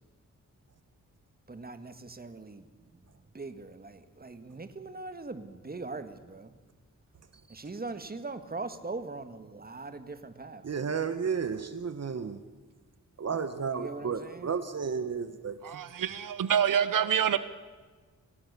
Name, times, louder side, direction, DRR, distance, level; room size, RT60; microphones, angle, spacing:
voice 1, 1.5-2.7 3.3-6.5 7.5-10.6 13.7-14.5, right 3 dB, 30° right, 10 dB, 1.9 m, -41 dB
voice 2, 10.6-12.4 13.2-15.8, right 6 dB, 50° right, 11 dB, 1.2 m, -33 dB
voice 3, 15.6-17.4, right 8 dB, 85° right, 14 dB, 1.0 m, -26 dB
27.0 x 17.5 x 6.9 m, 1.4 s
wide cardioid pair, 95°, 32 cm